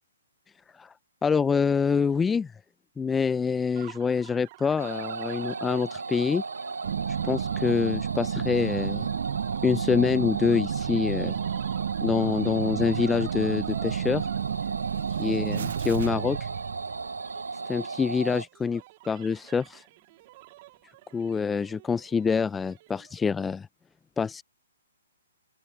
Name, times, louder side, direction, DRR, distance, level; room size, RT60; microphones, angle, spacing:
voice 1, 1.2-2.5 3.0-6.4 7.2-9.1 9.6-11.4 12.0-14.3 15.2-16.4 17.7-19.8 21.1-23.7 24.2-24.4, left 5 dB, 10° left, 0.4 m, -26 dB
sound 1, 3.7-23.2, right 19 dB, 40° right, 2.9 m, -50 dB
sound 2, 4.8-18.4, right 4 dB, 90° right, 1.2 m, -35 dB
sound 3, 6.8-17.4 17.7-17.8, right 8 dB, 60° right, 0.3 m, -31 dB
open air
hypercardioid pair, 135°, 0 cm